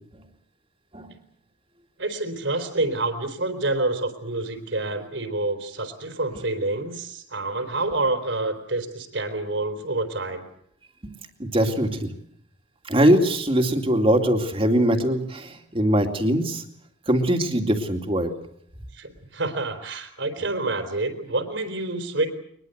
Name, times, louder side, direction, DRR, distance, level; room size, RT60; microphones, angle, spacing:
voice 1, 2.0-10.4 18.9-22.3, right 2 dB, 70° right, 8 dB, 4.0 m, -28 dB
voice 2, 11.4-12.1 12.9-16.6 17.1-18.3, equal, 30° right, 5 dB, 2.5 m, -21 dB
22.5 x 21.5 x 8.0 m, 0.69 s
head